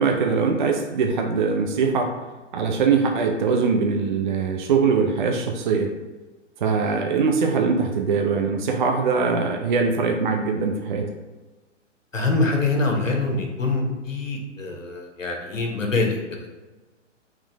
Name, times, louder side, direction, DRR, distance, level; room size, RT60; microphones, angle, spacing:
voice 1, 0.0-2.2 2.5-5.9 6.6-11.1, right 5 dB, 40° right, 3 dB, 0.4 m, -22 dB
voice 2, 12.1-16.5, left 3 dB, 80° left, 1 dB, 1.0 m, -24 dB
3.9 x 3.1 x 3.1 m, 1.2 s
figure-of-eight pair, 120°, 38 cm